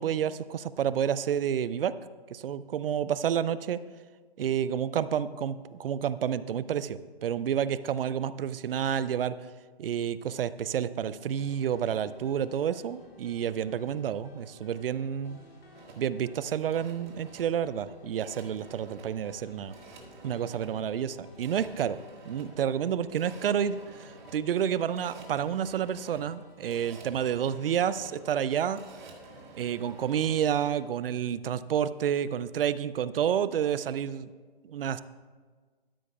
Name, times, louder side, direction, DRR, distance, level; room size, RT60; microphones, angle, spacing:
voice 1, 0.0-1.9 2.3-3.8 4.4-9.3 9.8-15.4 16.0-19.7 20.2-22.0 22.2-28.8 29.5-34.3 34.6-35.0, right 9 dB, 65° right, 16 dB, 0.5 m, -29 dB
sound 1, 11.4-30.9, left 1 dB, 75° left, 2.5 m, -54 dB
Rotary Phone Dialing, 15.7-30.3, right 3 dB, 50° right, 1.6 m, -51 dB
12.5 x 10.0 x 2.3 m, 1.5 s
figure-of-eight pair, 130°, 30 cm